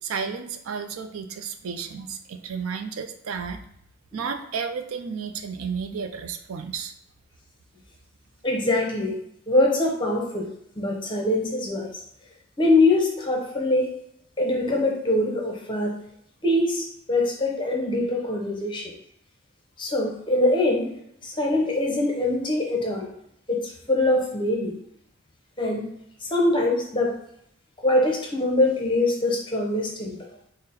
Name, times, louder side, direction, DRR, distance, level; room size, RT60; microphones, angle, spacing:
voice 1, 0.0-3.6 4.1-6.9, right 6 dB, 90° right, 7 dB, 0.4 m, -32 dB
voice 2, 8.4-9.2 9.5-10.5 10.8-11.9 12.6-13.9 14.4-15.9 16.4-18.9 19.8-20.9 21.2-23.1 23.5-24.7 25.6-25.9 26.3-27.1 27.8-30.2, left 2 dB, 25° left, 0 dB, 0.7 m, -23 dB
3.8 x 2.1 x 4.0 m, 0.73 s
head